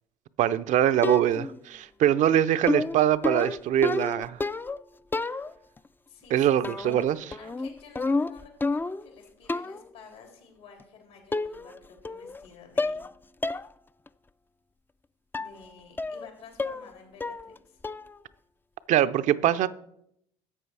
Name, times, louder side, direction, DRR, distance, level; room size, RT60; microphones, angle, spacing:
voice 1, 0.4-4.4 6.3-7.4 18.9-19.7, right 11 dB, 60° right, 0.6 m, -23 dB
sound 1, 1.0-1.6 2.7-4.8 5.1-5.8 6.6-7.1 7.3-9.1 9.5-9.9 10.8-10.9 11.3-11.8 12.1-12.5 12.8-13.1 13.4-13.7 14.1-14.2 15.3-15.6 16.0-16.3 16.6-16.9 17.2-17.6 17.8-18.2, left 3 dB, 15° left, 0.4 m, -30 dB
voice 2, 6.1-13.1 15.3-17.8, left 5 dB, 80° left, 4.0 m, -52 dB
13.5 x 7.9 x 4.7 m
hypercardioid pair, 65°, 14 cm